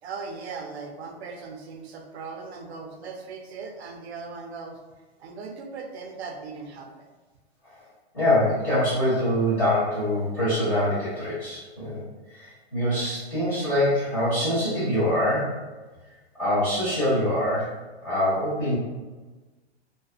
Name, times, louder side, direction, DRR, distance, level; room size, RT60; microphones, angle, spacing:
voice 1, 0.0-4.8 5.2-7.1, right 4 dB, 75° right, 2 dB, 0.6 m, -38 dB
voice 2, 8.1-12.0 12.3-15.5 16.3-17.7 18.0-18.8, left 1 dB, 5° left, -12 dB, 0.5 m, -24 dB
2.5 x 2.2 x 2.4 m, 1.2 s
supercardioid pair, 170°, 33 cm